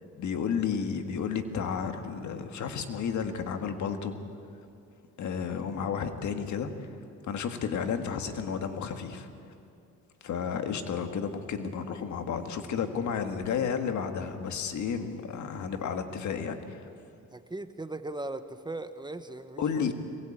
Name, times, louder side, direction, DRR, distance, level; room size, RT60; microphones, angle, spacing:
voice 1, 0.2-4.2 5.2-6.7 7.2-9.3 10.2-16.8 19.6-19.9, left 6 dB, 70° left, 7 dB, 2.0 m, -32 dB
voice 2, 17.3-20.0, right 2 dB, 15° right, 10 dB, 1.1 m, -39 dB
22.5 x 20.0 x 8.8 m, 2.5 s
cardioid pair, 90°, 30 cm